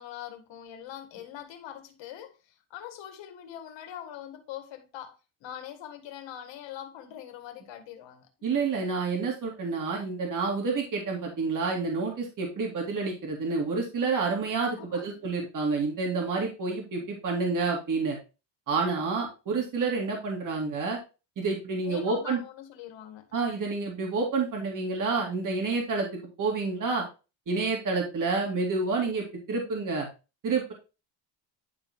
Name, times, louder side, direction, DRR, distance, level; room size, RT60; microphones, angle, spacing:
voice 1, 0.0-8.3 14.8-15.0 21.8-23.4, left 10 dB, 65° left, 2.0 m, -43 dB
voice 2, 8.4-18.2 18.7-21.0 21.4-22.4 23.3-27.0 27.5-30.1 30.4-30.7, right 4 dB, 40° right, 2.4 m, -29 dB
10.5 x 3.8 x 3.6 m
cardioid pair, 130°, 48 cm